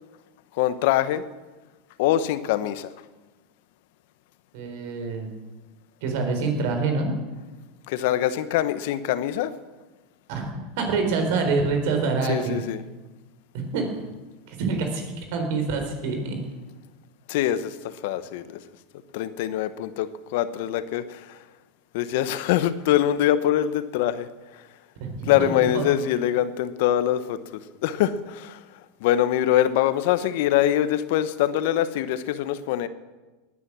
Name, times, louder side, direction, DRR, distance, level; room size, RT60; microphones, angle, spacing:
voice 1, 0.5-1.2 2.0-2.9 7.9-9.5 12.3-12.8 17.3-18.6 19.1-21.4 21.9-24.6 25.3-28.6 29.0-32.9, left 12 dB, 70° left, 13 dB, 1.0 m, -24 dB
voice 2, 4.5-5.3 6.0-7.2 10.3-10.5 10.8-12.6 13.7-14.0 14.5-15.0 15.3-16.4 25.0-25.8, right 4 dB, 70° right, 4 dB, 4.0 m, -26 dB
19.5 x 9.9 x 6.2 m, 1.2 s
hypercardioid pair, 105°, 0 cm